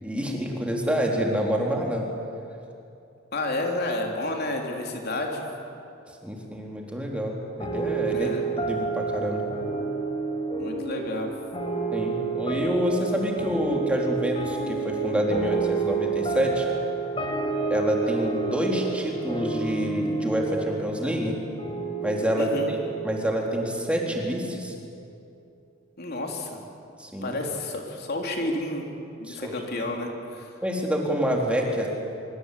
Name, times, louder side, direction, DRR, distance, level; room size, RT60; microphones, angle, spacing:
voice 1, 0.0-2.1 6.2-8.3 8.7-9.4 11.9-16.7 17.7-21.4 22.0-24.7 27.0-27.4 29.3-29.5 30.6-31.9, equal, 5° right, -1 dB, 3.7 m, -27 dB
voice 2, 3.3-5.4 8.1-8.5 10.6-11.3 22.4-22.7 26.0-26.6 27.2-28.9 29.2-30.5, left 2 dB, 50° left, 1 dB, 3.6 m, -30 dB
sound 1, 7.6-24.4, right 4 dB, 25° left, 4.4 m, -30 dB
25.0 x 24.0 x 8.5 m, 2.6 s
head